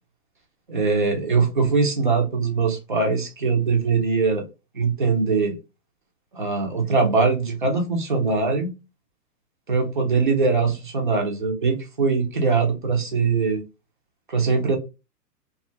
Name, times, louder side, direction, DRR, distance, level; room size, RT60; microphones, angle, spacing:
voice 1, 0.7-4.5 4.7-5.6 6.3-8.7 9.7-13.6 14.3-14.8, right 4 dB, 35° right, 0.4 m, -22 dB
2.6 x 2.2 x 2.6 m
hypercardioid pair, 145°, 50 cm